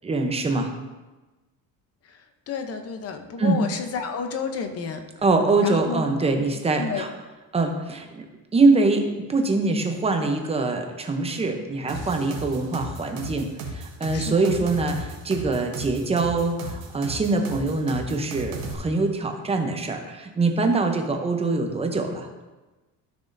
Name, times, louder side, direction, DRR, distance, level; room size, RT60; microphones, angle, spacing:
voice 1, 0.0-0.7 3.4-3.6 5.2-7.1 7.5-8.2 8.5-22.3, right 3 dB, 15° right, 4 dB, 0.7 m, -24 dB
voice 2, 2.5-5.0 5.6-6.0 6.8-7.1 14.1-14.5, left 5 dB, 35° left, 6 dB, 0.7 m, -31 dB
sound 1, 11.9-18.7, right 3 dB, 60° right, 1.5 m, -35 dB
13.0 x 6.1 x 2.6 m, 1.2 s
cardioid pair, 165°, 41 cm